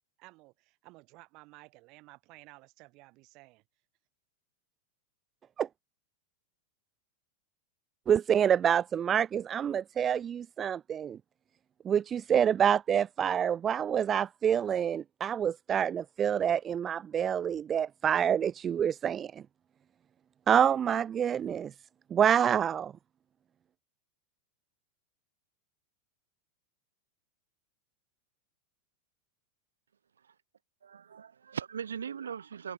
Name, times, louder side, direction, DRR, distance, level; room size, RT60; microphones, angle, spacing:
voice 1, 0.2-3.6, right 23 dB, 40° right, 7.2 m, -55 dB
voice 2, 8.1-11.2 11.9-19.3 20.5-21.7 22.1-22.9, right 8 dB, 25° right, 0.4 m, -27 dB
voice 3, 30.8-32.7, right 7 dB, 70° right, 4.1 m, -39 dB
figure-of-eight pair, 90°, 0 cm